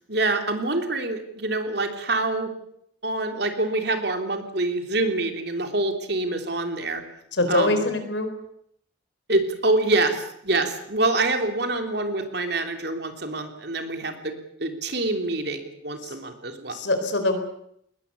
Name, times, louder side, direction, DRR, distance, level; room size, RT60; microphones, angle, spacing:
voice 1, 0.0-2.5 3.0-7.0 7.5-7.8 9.3-16.8, right 2 dB, 60° right, 6 dB, 3.3 m, -26 dB
voice 2, 7.3-8.3 16.0-16.2 16.7-17.4, left 2 dB, 75° left, 9 dB, 4.4 m, -23 dB
21.0 x 20.5 x 8.4 m, 0.72 s
head